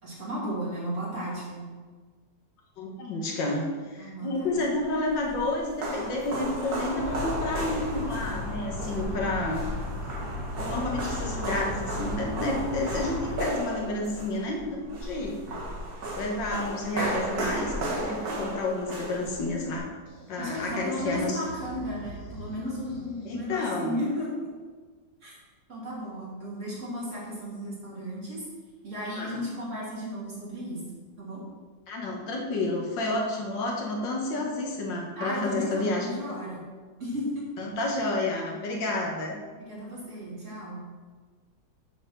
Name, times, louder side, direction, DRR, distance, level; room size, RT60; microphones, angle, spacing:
voice 1, 0.0-1.7 4.0-4.6 20.4-24.3 25.2-25.4 25.7-28.4 28.8-30.8 31.2-31.4 35.2-36.6 37.0-37.5 39.5-40.8, equal, 40° right, -7 dB, 2.8 m, -34 dB
voice 2, 2.8-9.6 10.6-15.4 16.2-19.9 20.3-21.4 23.3-24.0 29.1-29.4 31.9-36.1 36.5-36.6 37.6-39.4, left 2 dB, 75° left, -1 dB, 1.9 m, -30 dB
sound 1, 4.8-19.8, right 1 dB, 55° right, 2.0 m, -34 dB
sound 2, 7.0-13.4, left 1 dB, 90° right, 2.9 m, -35 dB
sound 3, 20.1-23.6, right 1 dB, 50° left, 1.9 m, -44 dB
7.6 x 4.2 x 6.4 m, 1.4 s
omnidirectional pair, 2.0 m